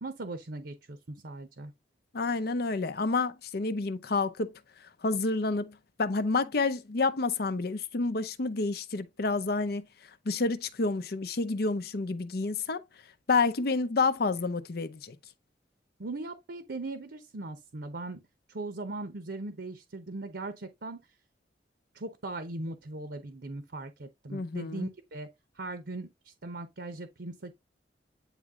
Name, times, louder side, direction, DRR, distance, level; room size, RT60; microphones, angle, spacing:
voice 1, 0.0-1.7 16.0-18.2 18.5-21.0 21.9-25.3 25.6-27.5, right 2 dB, 65° right, 0.8 m, -39 dB
voice 2, 2.1-4.5 5.0-9.8 10.3-12.8 13.3-15.2 24.3-24.9, left 3 dB, 60° left, 0.7 m, -29 dB
9.1 x 3.1 x 3.6 m
head